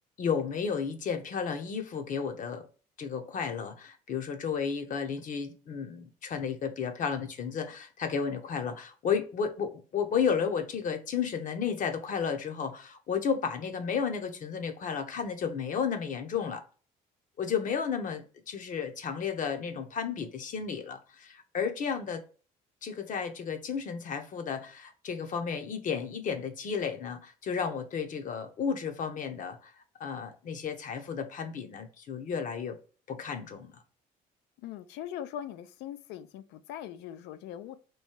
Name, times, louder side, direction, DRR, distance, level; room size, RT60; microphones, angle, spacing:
voice 1, 0.2-2.7 3.0-16.6 17.4-22.2 22.8-29.7 30.0-32.8 33.1-33.7, left 6 dB, 50° left, 0.8 m, -33 dB
voice 2, 34.6-37.8, left 10 dB, 85° left, 0.4 m, -41 dB
3.1 x 2.7 x 4.4 m
cardioid pair, 110°, 17 cm